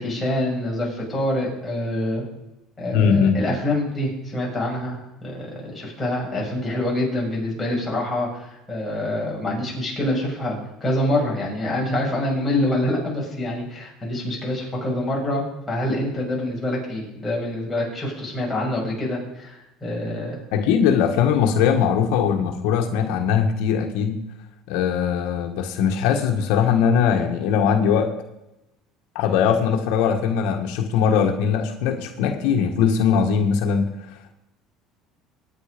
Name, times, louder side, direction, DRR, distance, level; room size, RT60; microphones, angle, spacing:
voice 1, 0.0-2.2 2.8-20.4, left 1 dB, 10° left, -4 dB, 7.1 m, -26 dB
voice 2, 2.9-3.4 20.5-24.2 24.7-28.1 29.1-34.3, left 7 dB, 75° left, 4 dB, 1.6 m, -20 dB
23.0 x 9.7 x 5.2 m, 0.93 s
cardioid pair, 130°, 0 cm